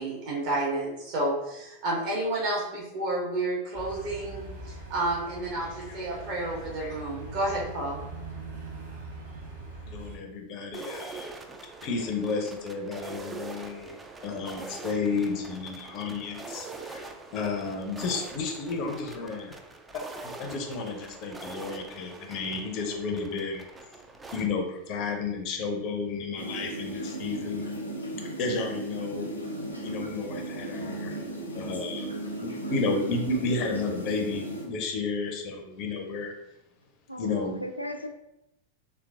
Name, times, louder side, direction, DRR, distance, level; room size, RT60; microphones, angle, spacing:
voice 1, 0.0-4.5 4.9-8.0, right 2 dB, 45° right, -4 dB, 1.3 m, -30 dB
sound 1, 3.7-10.2, right 3 dB, 65° right, 1.0 m, -42 dB
voice 2, 5.6-6.0 6.4-6.9 9.9-11.3 11.8-17.0 17.3-19.6 19.9-23.7 24.3-27.7 28.4-29.3 29.8-31.2 31.5-32.1 32.4-36.3 37.2-37.6, left 4 dB, 40° left, 3 dB, 0.5 m, -32 dB
sound 2, 10.7-24.5, right 3 dB, 15° right, 0.3 m, -43 dB
sound 3, 26.4-34.6, right 1 dB, 85° left, 0.7 m, -36 dB
voice 3, 37.1-38.1, equal, 90° right, 5 dB, 0.3 m, -37 dB
3.3 x 3.0 x 2.4 m, 0.87 s
figure-of-eight pair, 90°, 0 cm